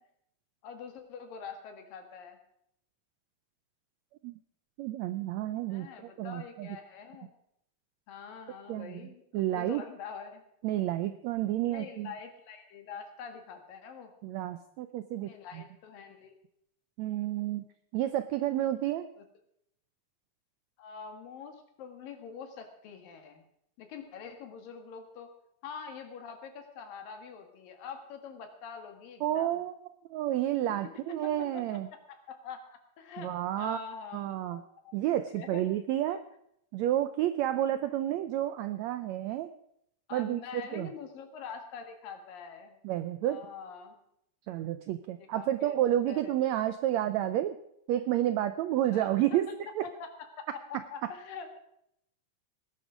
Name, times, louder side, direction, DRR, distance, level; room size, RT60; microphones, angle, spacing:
voice 1, 0.6-2.4 5.7-7.3 8.1-10.4 11.6-14.1 15.2-16.3 19.2-19.3 20.8-23.4 23.8-25.3 25.6-29.6 30.8-31.3 32.1-35.0 35.3-35.6 40.1-42.8 43.2-44.0 45.1-45.8 46.1-46.7 48.9-49.6 49.8-50.1 50.4-51.6, left 6 dB, 85° left, 6 dB, 3.6 m, -45 dB
voice 2, 4.8-6.7 8.7-9.0 9.3-9.8 10.6-12.1 14.2-15.6 17.0-17.7 17.9-19.1 29.2-29.7 30.1-31.9 33.2-33.8 34.1-34.6 34.9-36.2 36.7-39.5 40.1-40.9 42.8-43.4 44.5-47.6 47.9-49.5 49.8-49.9, right 13 dB, 85° right, 11 dB, 1.6 m, -30 dB
19.0 x 11.0 x 5.1 m, 0.75 s
omnidirectional pair, 3.9 m